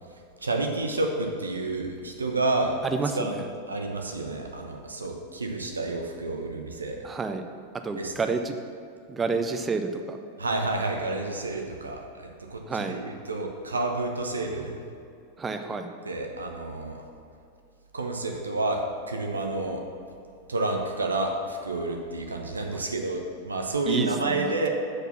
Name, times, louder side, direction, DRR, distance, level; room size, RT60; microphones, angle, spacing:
voice 1, 0.4-2.8 3.1-3.4 3.7-7.0 7.9-8.1 10.4-14.8 16.0-17.0 17.9-19.8 20.5-24.7, right 2 dB, 75° right, 3 dB, 0.8 m, -30 dB
voice 2, 2.8-3.5 7.0-7.4 7.8-8.5 9.1-10.2 12.7-13.0 15.4-15.9 22.7-22.8 23.9-24.6, right 4 dB, 15° right, 6 dB, 0.6 m, -29 dB
6.5 x 5.0 x 5.9 m, 2.4 s
figure-of-eight pair, 90°, 0 cm